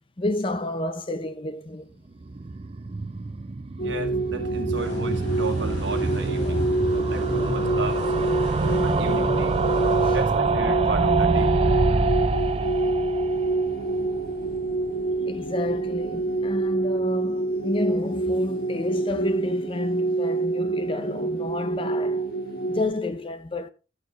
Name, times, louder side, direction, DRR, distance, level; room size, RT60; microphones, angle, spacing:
voice 1, 0.2-2.0 10.0-10.2 15.3-22.3 22.7-23.7, left 2 dB, 30° left, 0.6 m, -30 dB
sound 1, 2.1-15.2 15.5-15.6 15.8-15.9 16.1-16.2, right 3 dB, 30° right, 0.4 m, -26 dB
sound 2, 3.8-22.9, right 2 dB, 55° left, 1.5 m, -26 dB
voice 2, 3.8-6.7 6.9-8.0 8.8-9.6 10.1-11.6, right 2 dB, 90° right, 1.5 m, -34 dB
sound 3, 4.7-10.2, equal, 70° left, 4.5 m, -37 dB
12.5 x 6.9 x 3.1 m
head